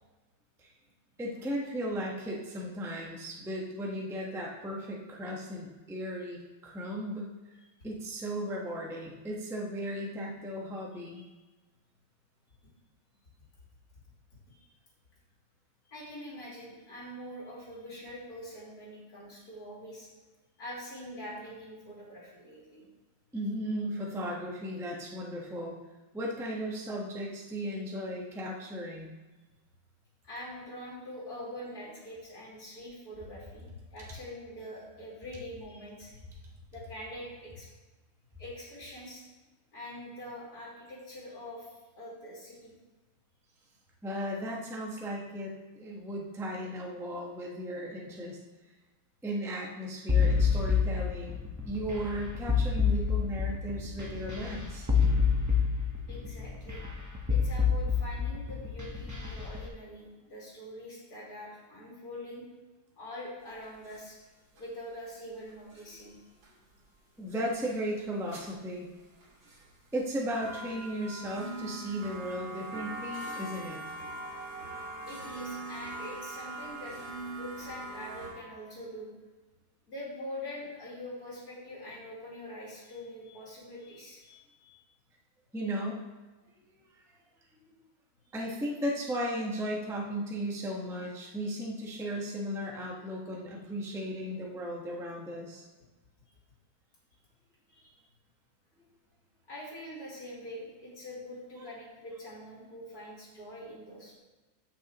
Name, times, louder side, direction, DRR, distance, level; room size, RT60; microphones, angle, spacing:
voice 1, 1.2-7.3 7.8-11.2 23.3-25.7 26.1-29.1 44.0-48.4 49.2-51.4 51.6-54.9 67.2-68.9 69.9-73.8 85.5-86.0 88.3-95.6, equal, ahead, -2 dB, 0.9 m, -36 dB
voice 2, 10.9-11.2 14.5-14.7 15.9-20.1 20.6-22.8 30.2-33.6 33.9-36.2 36.7-37.7 38.4-39.2 39.7-42.7 56.1-56.8 57.3-62.4 63.0-64.2 64.5-66.1 75.1-79.1 79.9-84.8 97.7-97.9 99.5-104.2, left 1 dB, 50° left, -6 dB, 3.3 m, -44 dB
sound 1, 50.1-59.6, left 6 dB, 20° right, 0.4 m, -27 dB
sound 2, 63.6-64.0 64.6-64.7 65.5-65.8 66.4-66.5 67.3-67.7 68.3-68.5 69.2-69.7 70.2-78.3, right 2 dB, 90° right, 2.9 m, -41 dB
14.5 x 6.0 x 3.0 m, 1.2 s
omnidirectional pair, 2.1 m